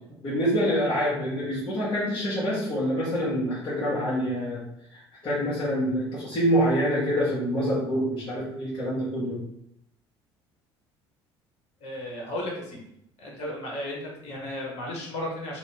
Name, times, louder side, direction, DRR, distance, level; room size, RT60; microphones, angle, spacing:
voice 1, 0.2-4.6 4.9-9.4, equal, 35° left, -9 dB, 1.2 m, -26 dB
voice 2, 11.8-12.8 13.2-15.6, left 1 dB, 50° left, -1 dB, 1.0 m, -34 dB
2.8 x 2.8 x 3.3 m, 0.75 s
figure-of-eight pair, 60°, 14 cm